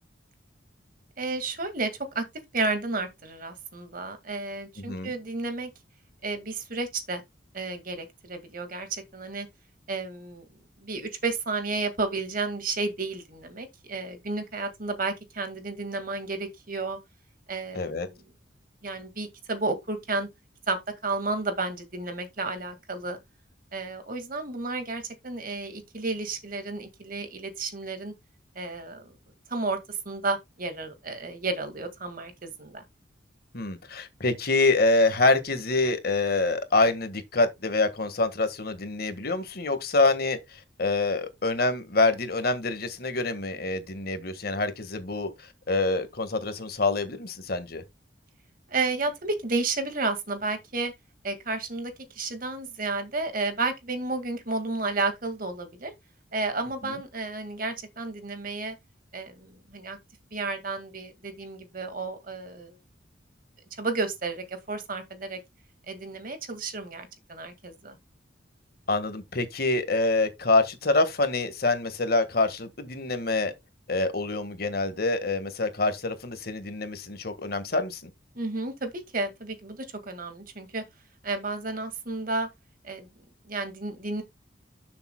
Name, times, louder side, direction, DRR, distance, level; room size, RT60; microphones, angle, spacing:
voice 1, 1.2-2.2 2.5-5.7 6.2-7.2 7.5-9.5 9.9-10.5 10.8-17.0 17.5-18.2 18.8-20.3 20.7-20.8 21.0-23.2 23.7-28.1 28.6-29.2 29.5-32.8 48.7-50.9 51.2-55.9 56.3-58.8 59.1-60.0 60.3-62.8 63.8-65.4 65.9-68.0 78.4-80.8 81.2-82.5 82.8-83.1 83.5-84.2, right 3 dB, 50° right, 1.9 m, -32 dB
voice 2, 17.7-18.1 33.5-47.8 56.8-56.9 68.9-73.5 73.9-78.1, left 3 dB, 55° left, 1.6 m, -26 dB
12.0 x 7.0 x 2.2 m
head